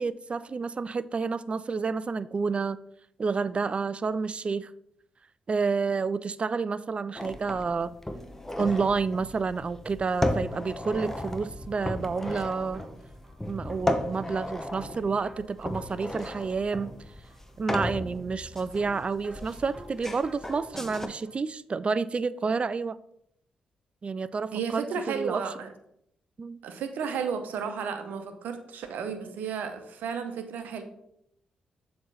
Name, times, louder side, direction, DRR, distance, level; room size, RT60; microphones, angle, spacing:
voice 1, 0.0-2.8 3.2-4.7 5.5-7.9 8.6-12.8 13.5-16.9 17.6-23.0 24.0-25.4 26.4-26.6, right 4 dB, 40° right, 0.3 m, -29 dB
sound 1, 7.2-21.1, left 1 dB, 10° left, 0.8 m, -35 dB
sound 2, 11.6-21.4, right 1 dB, 15° right, 1.2 m, -50 dB
voice 2, 24.5-25.7 26.6-30.8, right 6 dB, 70° right, 0.8 m, -33 dB
7.2 x 3.2 x 5.4 m
hypercardioid pair, 40°, 3 cm